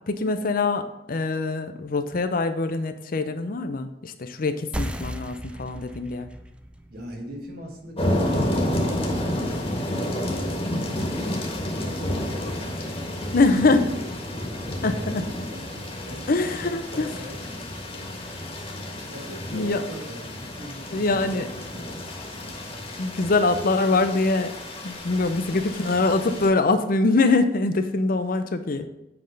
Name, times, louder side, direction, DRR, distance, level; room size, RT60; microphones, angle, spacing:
voice 1, 0.1-6.3 13.3-13.8 14.8-15.2 16.3-17.1 19.5-19.8 20.9-21.5 23.0-24.5 24.8-28.9, left 3 dB, 50° left, 9 dB, 0.6 m, -23 dB
sound 1, 4.7-9.9, right 1 dB, 5° right, 0.4 m, -37 dB
voice 2, 6.9-9.6 9.9-11.0 11.4-12.4 15.0-18.3 19.1-21.5 21.7-22.1, equal, 60° right, 1 dB, 1.6 m, -41 dB
sound 2, 8.0-26.5, left 1 dB, 35° left, 1.4 m, -30 dB
7.8 x 3.6 x 6.4 m, 0.91 s
head